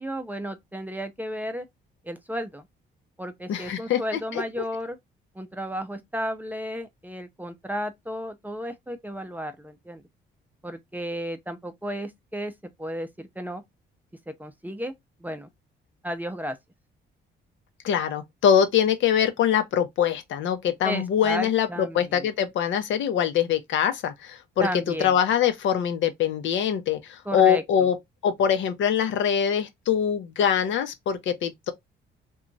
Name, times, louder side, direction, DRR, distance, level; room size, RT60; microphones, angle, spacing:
voice 1, 0.0-1.7 2.0-2.7 3.2-5.0 5.3-10.0 10.6-13.6 14.3-14.9 15.2-15.5 16.0-16.6 20.8-22.3 24.6-25.2 27.3-27.9, equal, 10° right, 0.5 m, -33 dB
voice 2, 3.5-4.0 4.3-4.4 17.8-21.7 21.9-24.7 25.0-28.0 28.2-31.7, left 8 dB, 70° left, 0.6 m, -23 dB
2.9 x 2.3 x 2.5 m
cardioid pair, 90°, 20 cm